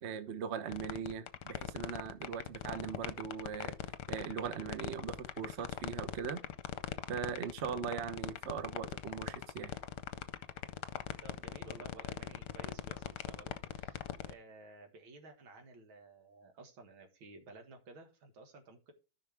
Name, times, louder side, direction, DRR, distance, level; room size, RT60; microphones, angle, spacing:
voice 1, 0.0-3.8 4.1-6.4 7.1-9.8, right 7 dB, 50° right, 0.9 m, -40 dB
sound 1, 0.7-14.3, left 12 dB, 65° left, 1.2 m, -40 dB
voice 2, 11.2-14.0 14.3-18.9, right 3 dB, 90° right, 2.5 m, -54 dB
13.0 x 5.7 x 3.4 m
omnidirectional pair, 2.1 m